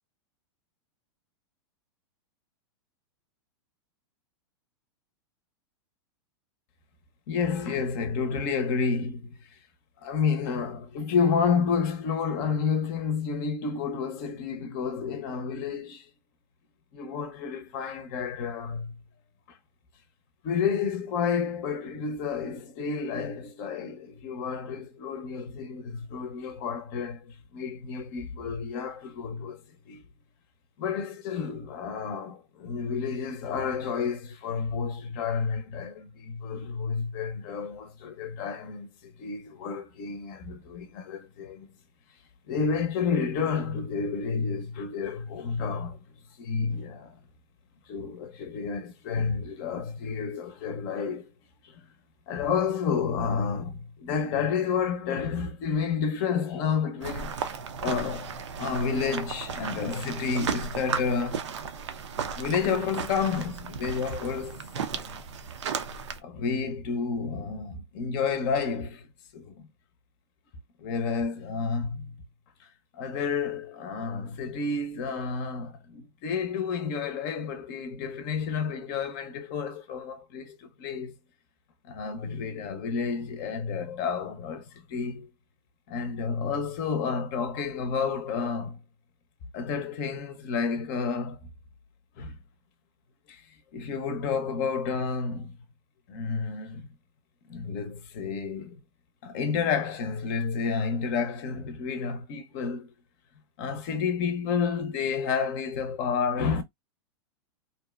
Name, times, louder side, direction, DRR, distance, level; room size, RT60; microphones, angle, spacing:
voice 1, 7.3-9.6 10.0-16.1 16.9-18.9 19.5-19.6 20.4-30.0 30.8-41.7 42.5-46.0 46.4-47.2 47.9-51.3 51.6-51.8 52.3-57.5 57.8-61.5 62.4-64.6 64.9-65.1 66.2-69.1 69.3-69.7 70.8-72.1 72.6-81.2 81.9-85.3 85.9-88.8 89.5-91.5 92.2-92.4 93.3-95.5 96.1-96.9 97.5-98.8 99.2-102.9 103.6-106.6, left 5 dB, 45° left, 0.6 m, -30 dB
sound 1, 57.0-66.2, right 6 dB, 90° right, 0.5 m, -35 dB
2.7 x 2.1 x 2.2 m
hypercardioid pair, 125°, 15 cm